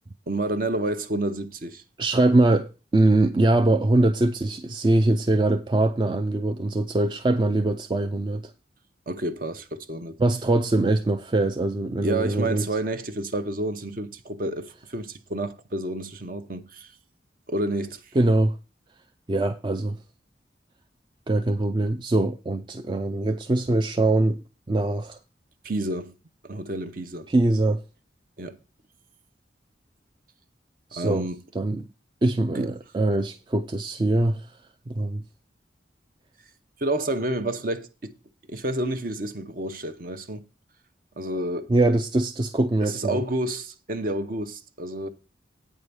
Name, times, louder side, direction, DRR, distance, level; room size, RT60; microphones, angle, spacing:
voice 1, 0.3-1.8 9.1-10.2 12.0-16.9 17.5-18.0 25.6-26.1 26.4-27.3 28.4-28.6 30.9-31.4 32.5-32.7 36.8-38.1 38.5-40.4 41.2-41.7 42.8-45.1, right 1 dB, 50° right, 0.8 m, -29 dB
voice 2, 2.0-8.5 10.2-12.7 18.2-18.6 19.3-20.0 21.3-25.2 27.3-27.8 30.9-31.3 31.5-31.9 32.2-34.5 34.9-35.2 41.7-43.2, right 2 dB, 25° right, 0.4 m, -22 dB
8.8 x 4.8 x 6.9 m
head